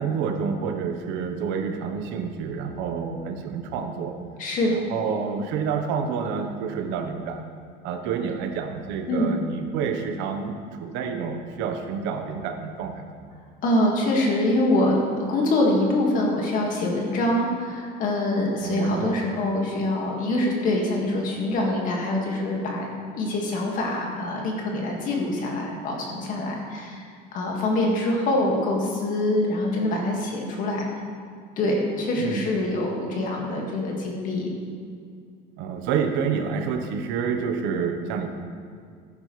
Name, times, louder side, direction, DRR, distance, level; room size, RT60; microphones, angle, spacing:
voice 1, 0.0-4.1 4.7-7.4 7.8-13.2 18.6-19.2 32.2-32.4 35.6-38.3, right 6 dB, 75° right, 5 dB, 1.2 m, -28 dB
voice 2, 4.4-4.7 9.1-9.3 13.6-22.9 23.1-27.1 27.3-30.9 31.6-34.5, left 1 dB, 45° left, -1 dB, 2.0 m, -24 dB
14.0 x 10.5 x 3.3 m, 2.2 s
cardioid pair, 170°, 20 cm